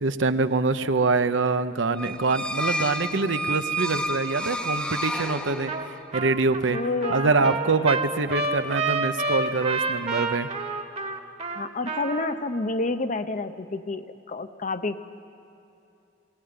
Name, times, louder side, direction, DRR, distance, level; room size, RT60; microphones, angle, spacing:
voice 1, 0.0-5.7 6.1-6.8 7.1-10.5, right 3 dB, 70° right, 10 dB, 0.8 m, -24 dB
sound 1, 1.9-6.1, equal, 5° left, 0.9 m, -30 dB
Trumpet, 5.7-5.9 6.1-12.3, right 3 dB, 35° right, 1.2 m, -29 dB
voice 2, 6.7-7.6 11.5-15.0, left 3 dB, 40° left, 10 dB, 0.7 m, -29 dB
20.5 x 17.5 x 9.5 m, 2.6 s
head